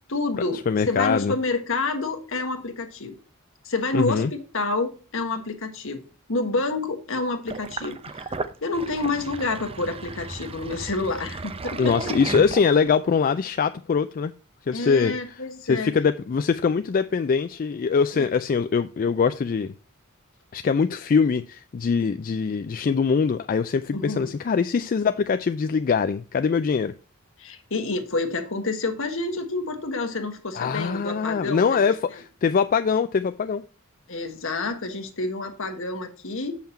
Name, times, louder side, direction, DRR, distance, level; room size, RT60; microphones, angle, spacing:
voice 1, 0.1-3.1 3.6-6.0 6.3-12.0 14.7-15.9 18.1-18.3 23.9-24.3 27.4-31.9 34.1-36.6, left 3 dB, 65° left, 1.3 m, -28 dB
voice 2, 0.7-1.3 3.9-4.3 11.8-14.3 14.7-15.1 15.7-19.7 20.5-26.9 30.6-33.6, left 5 dB, 40° left, 0.3 m, -23 dB
Sink (filling or washing), 7.5-13.0, right 3 dB, 25° right, 0.5 m, -34 dB
7.3 x 5.7 x 4.3 m
head